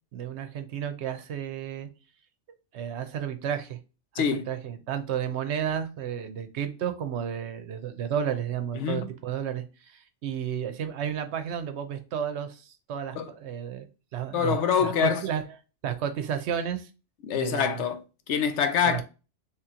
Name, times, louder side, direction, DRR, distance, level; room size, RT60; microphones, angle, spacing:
voice 1, 0.1-1.9 2.7-3.8 4.1-13.9 14.1-15.4 15.8-16.9 17.3-17.8 18.8-19.0, right 8 dB, 70° right, 0.9 m, -32 dB
voice 2, 8.7-9.1 13.2-13.3 14.3-15.2 17.2-19.0, left 7 dB, 75° left, 0.9 m, -25 dB
3.3 x 3.0 x 3.6 m
omnidirectional pair, 1.2 m